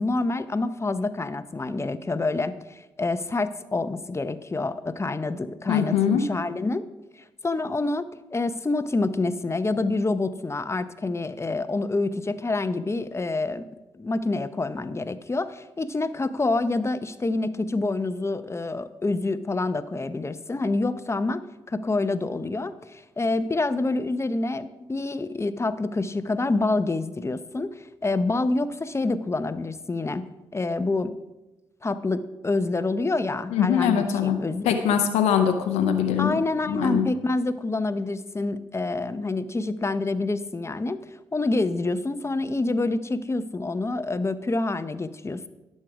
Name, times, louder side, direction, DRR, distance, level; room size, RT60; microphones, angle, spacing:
voice 1, 0.0-6.8 7.4-8.1 8.3-13.6 13.9-21.4 21.7-30.2 30.5-31.1 31.8-34.8 36.2-41.0 41.3-45.5, left 2 dB, 25° left, 13 dB, 0.7 m, -27 dB
voice 2, 5.7-6.3 33.5-34.4 34.6-36.4 36.7-37.1, left 8 dB, 85° left, 6 dB, 0.7 m, -22 dB
11.5 x 6.5 x 4.8 m, 1.0 s
supercardioid pair, 55°, 11 cm